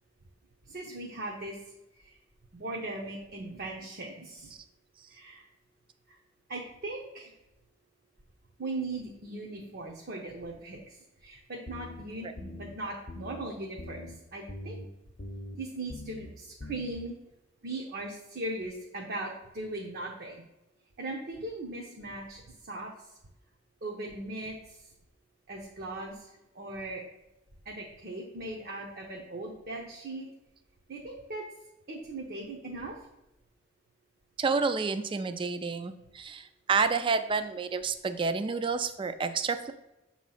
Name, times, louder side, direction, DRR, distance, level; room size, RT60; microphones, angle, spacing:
voice 1, 0.7-1.6 1.9-2.2 2.5-4.5 5.1-5.4 6.1-6.2 6.5-7.3 8.6-14.8 15.6-17.1 17.6-20.4 21.0-23.2 23.8-24.9 25.5-27.0 27.6-30.3 30.9-31.4 31.9-33.0, right 2 dB, 55° right, 0 dB, 0.8 m, -39 dB
sound 1, 11.7-12.0 12.4-12.7 13.1-13.4 13.8-14.1 14.5-14.9 15.2-15.6 15.9-16.3 16.6-17.0, left 1 dB, 40° left, 0.7 m, -42 dB
voice 2, 34.4-39.7, right 4 dB, 25° right, 10 dB, 0.3 m, -29 dB
6.7 x 3.1 x 5.5 m, 0.94 s
head